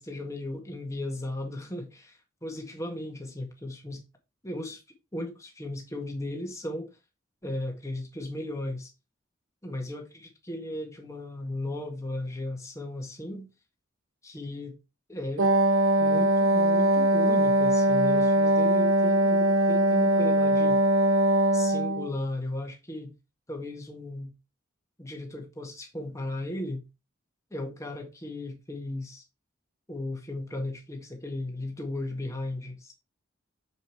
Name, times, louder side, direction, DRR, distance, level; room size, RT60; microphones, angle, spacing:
voice 1, 0.0-4.0 4.4-4.8 5.1-6.9 7.4-8.9 9.6-13.5 14.2-14.8 15.1-15.5 16.0-20.8 21.5-23.1 23.5-24.3 25.0-26.8 27.5-29.2 29.9-32.9, left 1 dB, 15° left, 1.8 m, -36 dB
Wind instrument woodwind instrument, 15.4-22.1, right 1 dB, 85° right, 1.0 m, -22 dB
7.2 x 5.2 x 4.6 m
head